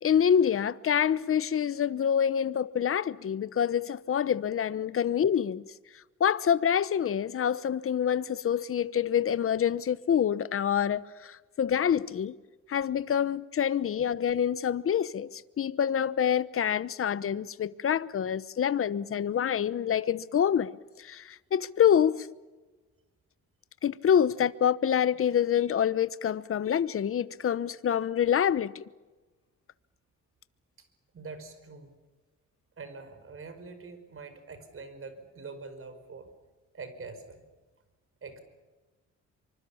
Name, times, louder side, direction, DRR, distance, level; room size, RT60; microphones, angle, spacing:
voice 1, 0.0-5.6 6.2-12.3 12.7-20.7 21.0-22.3 23.8-28.8, left 8 dB, 45° left, 1.0 m, -26 dB
voice 2, 31.1-32.0 32.8-36.3 36.7-37.5 38.2-38.4, right 4 dB, 45° right, 5.1 m, -44 dB
25.5 x 25.0 x 7.2 m
cardioid pair, 115°, 30 cm